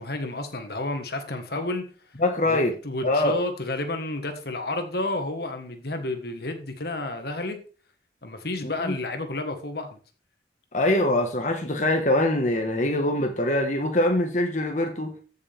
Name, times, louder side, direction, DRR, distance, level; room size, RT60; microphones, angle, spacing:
voice 1, 0.0-1.8 2.5-2.6 2.8-7.6 8.2-10.0, left 2 dB, 55° left, 1.6 m, -31 dB
voice 2, 2.2-2.7 3.0-3.3 8.6-9.0 10.7-15.1, left 1 dB, 40° left, 1.5 m, -23 dB
14.5 x 6.6 x 3.5 m
head